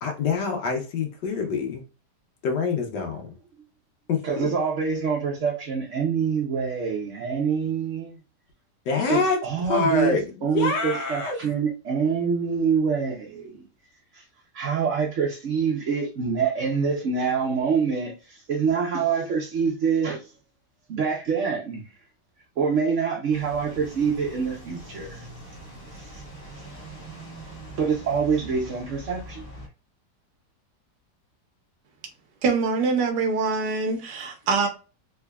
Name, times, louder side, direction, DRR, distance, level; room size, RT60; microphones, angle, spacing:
voice 1, 0.0-1.8 2.4-3.3 4.1-4.5 8.9-11.4, left 4 dB, 90° left, 1.5 m, -26 dB
voice 2, 4.2-8.2 9.1-13.6 14.1-14.2 14.5-20.2 20.9-21.8 22.6-25.3 25.9-26.2 27.8-29.5, right 6 dB, 55° right, 1.0 m, -25 dB
sound 1, 23.3-29.7, right 1 dB, 25° left, 1.7 m, -42 dB
voice 3, 32.4-34.7, right 4 dB, 80° right, 1.4 m, -24 dB
3.7 x 3.4 x 2.2 m
omnidirectional pair, 1.8 m